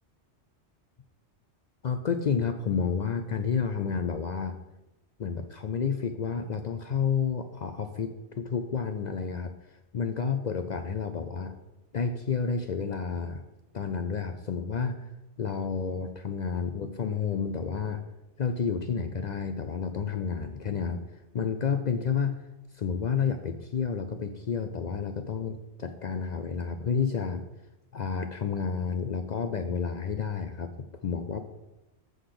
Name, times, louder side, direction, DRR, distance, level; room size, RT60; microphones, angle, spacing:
voice 1, 1.8-4.6 5.2-9.5 9.9-11.5 11.9-13.4 13.7-15.0 15.4-18.0 18.4-21.0 21.3-22.4 22.7-27.4 27.9-31.4, left 6 dB, 55° left, 7 dB, 0.5 m, -30 dB
7.8 x 3.9 x 6.6 m, 0.98 s
omnidirectional pair, 1.2 m